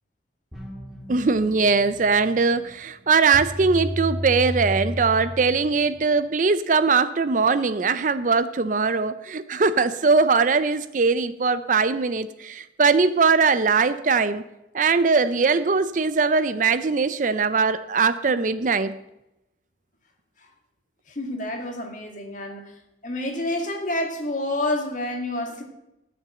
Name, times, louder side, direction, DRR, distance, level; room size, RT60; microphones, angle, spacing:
sound 1, 0.5-6.1, equal, ahead, 1.9 m, -33 dB
voice 1, 1.1-14.4 14.7-18.9, right 4 dB, 45° right, 14 dB, 0.5 m, -21 dB
voice 2, 21.1-25.6, left 1 dB, 40° left, 3 dB, 2.0 m, -29 dB
13.5 x 6.0 x 7.8 m, 0.91 s
head